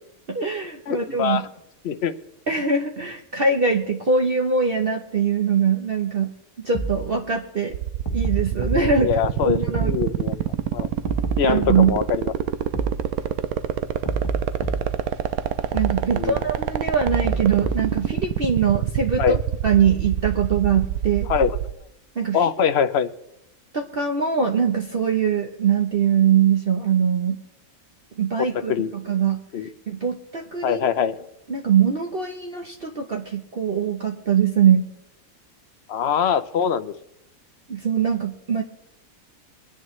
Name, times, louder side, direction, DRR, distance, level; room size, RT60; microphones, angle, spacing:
voice 1, 0.3-1.4 2.5-7.8 8.1-9.1 9.4-9.9 11.4-11.9 15.7-19.4 19.6-21.3 22.2-22.4 23.7-27.4 28.2-29.4 29.9-30.8 31.5-34.9 37.7-38.6, right 6 dB, 45° right, 2 dB, 1.1 m, -22 dB
voice 2, 0.9-1.5 1.8-2.1 9.0-10.4 10.7-10.9 11.4-12.3 12.6-12.9 16.1-16.4 19.2-19.4 21.3-21.6 22.3-23.1 28.4-28.9 29.5-29.7 30.6-31.2 35.9-36.9, left 7 dB, 55° left, 11 dB, 0.9 m, -23 dB
sound 1, 6.7-7.1 8.1-8.9 9.7-10.1 11.1-12.0 12.7-13.1 14.1-15.0 15.7-16.1 17.1-18.0, right 3 dB, 20° left, 1.2 m, -28 dB
sound 2, 7.7-21.7, right 12 dB, 85° right, 1.2 m, -25 dB
24.0 x 10.0 x 3.2 m, 0.84 s
omnidirectional pair, 1.5 m